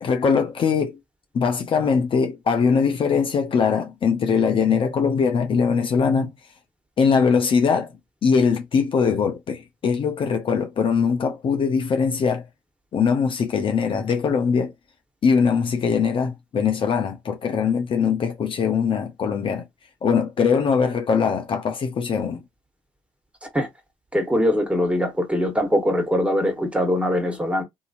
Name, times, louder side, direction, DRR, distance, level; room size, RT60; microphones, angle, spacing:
voice 1, 0.0-1.0 1.3-6.3 7.0-7.9 8.2-12.4 12.9-14.7 15.2-19.7 20.0-22.4, left 6 dB, 45° left, 0.7 m, -21 dB
voice 2, 24.1-27.6, equal, 10° right, 1.5 m, -22 dB
2.8 x 2.7 x 2.5 m
hypercardioid pair, 60°, 12 cm